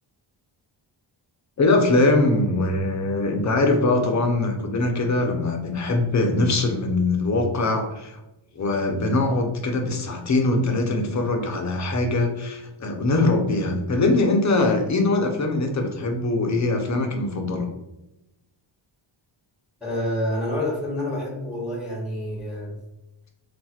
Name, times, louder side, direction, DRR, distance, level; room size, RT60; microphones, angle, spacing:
voice 1, 1.6-8.2 8.6-17.7, left 2 dB, 35° left, 3 dB, 0.6 m, -22 dB
voice 2, 19.8-22.7, left 1 dB, ahead, -3 dB, 0.9 m, -28 dB
4.2 x 2.4 x 2.3 m, 0.94 s
wide cardioid pair, 115°, 50 cm